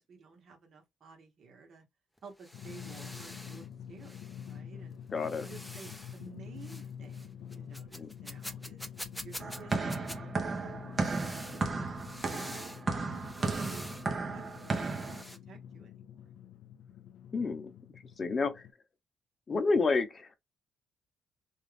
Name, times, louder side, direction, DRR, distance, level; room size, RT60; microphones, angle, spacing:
voice 1, 0.0-1.8 2.2-4.2 4.5-5.0 5.4-8.8 9.2-12.0 12.4-13.9 14.3-15.2 15.5-16.1, right 5 dB, 65° right, 1.1 m, -53 dB
sound 1, 2.2-3.7 4.0-4.6 5.2-6.2 6.6-6.9 7.1-10.2 11.0-12.8 13.1-14.1 14.4-15.4, equal, 5° left, 0.5 m, -47 dB
Drum, 2.5-18.7, left 8 dB, 80° left, 0.4 m, -47 dB
voice 2, 5.1-5.5 7.9-8.1 17.3-17.7 18.2-18.6 19.5-20.3, left 3 dB, 40° left, 0.8 m, -29 dB
sound 2, 9.4-15.2, right 3 dB, 40° right, 0.7 m, -34 dB
2.6 x 2.3 x 3.3 m
cardioid pair, 90°, 0 cm